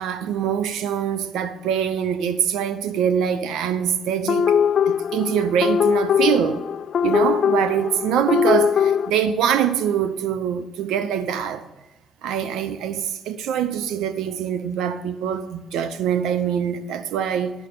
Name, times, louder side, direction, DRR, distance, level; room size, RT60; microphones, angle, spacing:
voice 1, 0.0-4.5 4.9-6.6 7.0-11.7 12.2-17.5, right 8 dB, 90° right, 0.7 m, -24 dB
sound 1, 4.3-9.1, left 8 dB, 60° left, 0.4 m, -21 dB
11.5 x 5.5 x 6.7 m
cardioid pair, 90°, 0 cm